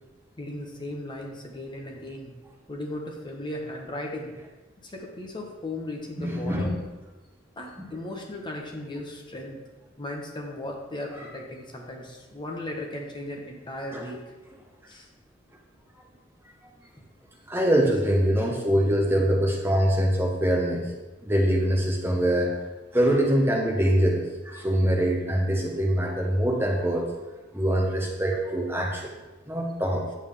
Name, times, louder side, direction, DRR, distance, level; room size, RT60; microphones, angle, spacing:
voice 1, 0.4-2.3 2.7-4.3 4.8-6.7 7.6-9.6 10.0-14.3 14.9-15.1, left 1 dB, 25° left, 0 dB, 1.1 m, -36 dB
voice 2, 6.2-6.8 11.2-11.3 13.9-14.0 17.5-20.9 21.2-22.5 22.9-27.1 27.5-29.1 29.5-30.1, equal, 10° right, -1 dB, 1.0 m, -24 dB
8.9 x 7.2 x 3.5 m, 1.1 s
head